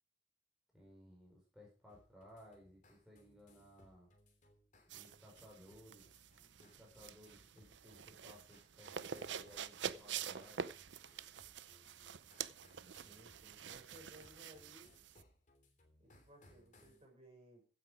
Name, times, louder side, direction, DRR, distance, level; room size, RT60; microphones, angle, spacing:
voice 1, 0.7-4.1 4.9-6.1 6.6-10.7, left 1 dB, ahead, -3 dB, 5.1 m, -60 dB
sound 1, 1.9-17.0, left 1 dB, 45° left, 3.3 m, -68 dB
sound 2, 4.9-15.2, right 7 dB, 80° right, 0.6 m, -47 dB
voice 2, 13.0-14.9 16.0-17.7, right 1 dB, 35° right, 1 dB, 6.5 m, -60 dB
15.5 x 8.9 x 4.9 m, 0.37 s
head